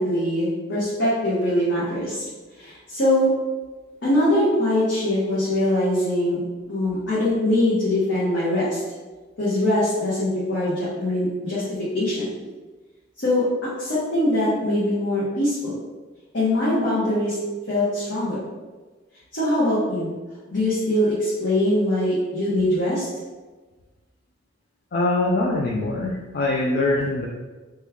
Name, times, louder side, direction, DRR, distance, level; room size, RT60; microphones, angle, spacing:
voice 1, 0.0-2.3 2.6-3.3 4.0-8.8 9.4-11.6 11.9-12.3 13.2-15.7 16.3-17.4 17.7-18.4 19.3-20.1 20.5-23.1, left 1 dB, 70° left, -11 dB, 1.0 m, -22 dB
voice 2, 24.9-27.3, left 2 dB, 50° left, -2 dB, 0.3 m, -23 dB
3.0 x 2.2 x 3.4 m, 1.3 s
head